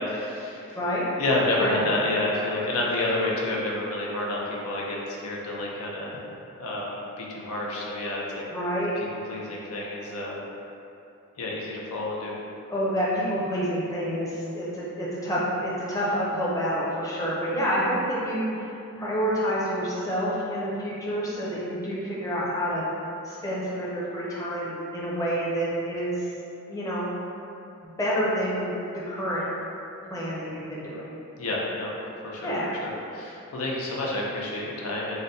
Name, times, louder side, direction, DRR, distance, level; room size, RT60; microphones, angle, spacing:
voice 1, 0.0-0.8 1.2-6.2 6.6-8.4 9.0-10.4 11.4-12.3 31.4-31.9 32.2-32.5 32.8-35.2, left 2 dB, 85° left, -3 dB, 0.6 m, -29 dB
voice 2, 0.7-1.1 1.6-1.9 8.5-8.9 12.7-22.8 23.2-26.2 26.7-27.1 27.8-29.4 30.1-31.1 32.4-32.8, equal, 15° left, -7 dB, 0.6 m, -28 dB
3.9 x 2.1 x 4.0 m, 2.7 s
head